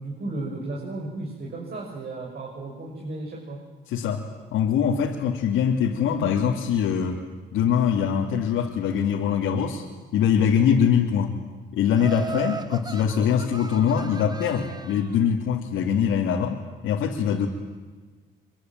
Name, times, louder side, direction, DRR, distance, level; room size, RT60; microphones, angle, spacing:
voice 1, 0.0-3.6 12.0-12.1, right 2 dB, 50° right, -1 dB, 6.8 m, -34 dB
voice 2, 3.9-4.2 4.5-7.2 7.5-9.8 10.1-11.4 11.7-17.5, left 8 dB, 90° left, -2 dB, 3.0 m, -23 dB
Laughter, 12.0-15.2, right 4 dB, 20° right, 0.9 m, -36 dB
26.0 x 24.5 x 9.3 m, 1.4 s
cardioid pair, 90°, 20 cm